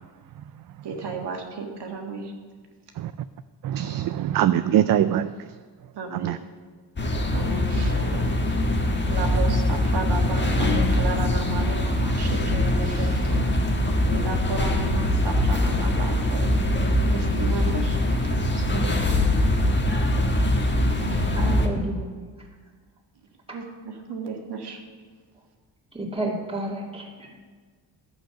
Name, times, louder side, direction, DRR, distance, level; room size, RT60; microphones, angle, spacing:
voice 1, 0.8-2.3 6.0-6.3 7.3-8.3 9.1-13.4 14.1-16.5 17.1-18.0 18.5-18.9 23.5-24.8, right 4 dB, 70° right, 2 dB, 1.9 m, -34 dB
voice 2, 3.6-5.3 6.1-6.4, right 11 dB, 55° right, 11 dB, 0.4 m, -22 dB
sound 1, 7.0-21.7, left 1 dB, 25° left, 1.4 m, -22 dB
voice 3, 21.4-22.3 23.5-23.6 25.9-27.4, right 2 dB, 15° right, -3 dB, 2.4 m, -31 dB
11.5 x 7.9 x 5.8 m, 1.5 s
cardioid pair, 95°, 43 cm